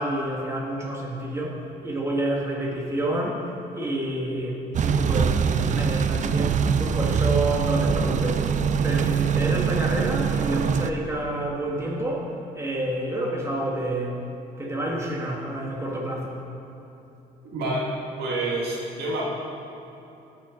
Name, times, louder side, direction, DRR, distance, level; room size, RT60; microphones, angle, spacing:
voice 1, 0.0-8.5 8.8-14.2 14.6-16.4, right 1 dB, 15° right, -3 dB, 1.9 m, -29 dB
sound 1, 4.7-10.9, right 6 dB, 45° right, 0.5 m, -23 dB
voice 2, 17.4-19.3, right 1 dB, 75° right, -4 dB, 2.0 m, -28 dB
17.0 x 6.3 x 3.9 m, 2.9 s
cardioid pair, 85°, 17 cm